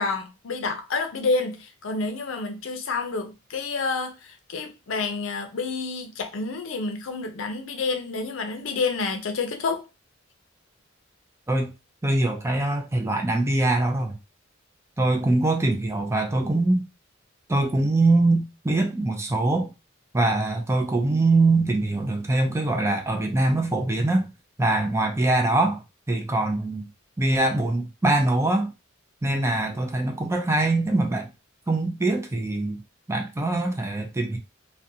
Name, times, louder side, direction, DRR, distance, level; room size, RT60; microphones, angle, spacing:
voice 1, 0.0-9.8, left 4 dB, 75° left, 0.5 m, -29 dB
voice 2, 12.0-14.2 15.0-16.8 17.5-19.7 20.1-24.3 24.6-26.9 27.2-28.7 29.2-31.3 31.7-32.8 33.1-34.4, right 2 dB, 15° right, 0.4 m, -23 dB
2.4 x 2.2 x 2.6 m
head